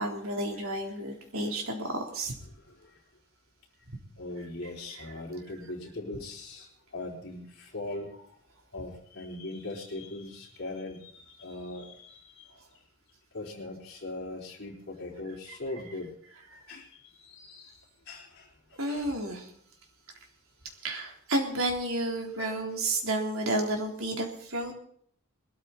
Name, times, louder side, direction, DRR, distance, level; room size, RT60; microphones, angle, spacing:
voice 1, 0.0-2.3 16.5-16.6 18.8-19.5 20.8-24.7, right 1 dB, 70° right, 2 dB, 3.7 m, -31 dB
voice 2, 2.5-3.0 4.2-8.4 8.7-12.5 13.3-16.1 16.7-19.1 22.4-22.6, left 2 dB, 50° left, -4 dB, 4.0 m, -40 dB
21.0 x 13.5 x 4.3 m, 0.62 s
head